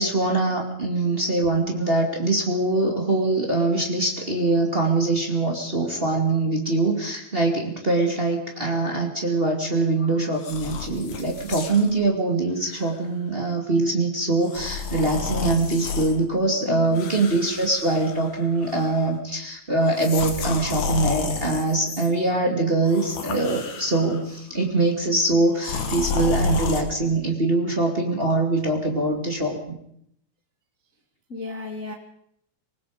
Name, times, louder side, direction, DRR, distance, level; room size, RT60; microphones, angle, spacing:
voice 1, 0.0-29.8, right 2 dB, 40° right, 1 dB, 0.8 m, -23 dB
sound 1, 10.4-11.9 12.6-12.8 14.4-16.2 16.9-18.4 18.6-19.1 19.9-22.1 22.8-24.2 25.6-26.8, left 3 dB, 50° left, 2.4 m, -30 dB
voice 2, 16.7-17.0 31.3-31.9, left 2 dB, 65° left, 1 dB, 0.7 m, -34 dB
25.5 x 20.0 x 5.1 m, 0.71 s
omnidirectional pair, 5.7 m